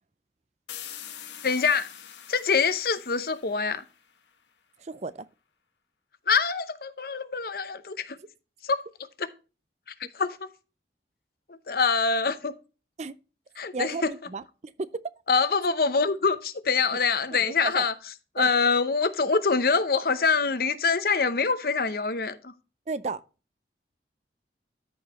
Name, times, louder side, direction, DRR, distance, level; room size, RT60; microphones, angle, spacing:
sound 1, 0.7-4.3, left 10 dB, 85° left, 1.2 m, -44 dB
voice 1, 1.4-1.9 2.3-3.8 6.3-8.2 8.6-8.8 9.2-9.3 10.1-10.5 11.5-12.5 13.6-14.1 15.3-17.9 18.3-22.5, left 5 dB, 55° left, 0.7 m, -25 dB
voice 2, 4.8-5.3 13.0-13.2 13.7-15.0 17.3-17.9 18.4-18.5 22.9-23.2, right 3 dB, 40° right, 0.4 m, -34 dB
13.5 x 4.8 x 3.0 m
head